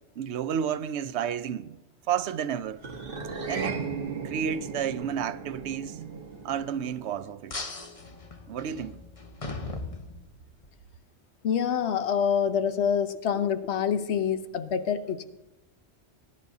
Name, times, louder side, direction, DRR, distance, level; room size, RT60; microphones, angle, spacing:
voice 1, 0.2-1.8 2.1-2.8 3.5-3.8 4.2-7.6 8.5-9.0, right 8 dB, 80° right, 0.9 m, -31 dB
sound 1, 2.8-7.4, right 5 dB, 55° right, 1.4 m, -36 dB
sound 2, 7.5-10.7, left 3 dB, 30° left, 1.1 m, -39 dB
voice 2, 11.4-15.2, left 7 dB, 75° left, 1.0 m, -26 dB
19.0 x 10.5 x 2.7 m
omnidirectional pair, 1.1 m